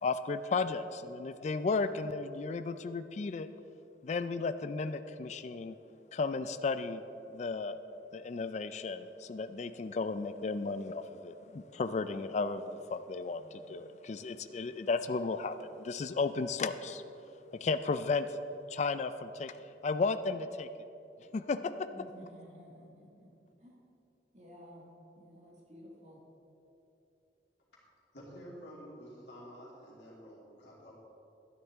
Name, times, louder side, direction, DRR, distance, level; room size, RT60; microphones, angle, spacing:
voice 1, 0.0-3.5 4.0-5.8 6.1-7.0 7.3-7.8 8.1-17.0 17.5-18.3 18.7-19.5 19.8-20.7 21.3-21.7, left 4 dB, 40° left, 11 dB, 0.3 m, -34 dB
voice 2, 21.9-23.3 23.6-23.8 24.3-24.9 25.2-26.2, equal, 40° right, -3 dB, 1.7 m, -53 dB
voice 3, 28.1-31.0, equal, 80° left, -5 dB, 2.6 m, -50 dB
12.5 x 10.0 x 3.6 m, 2.8 s
head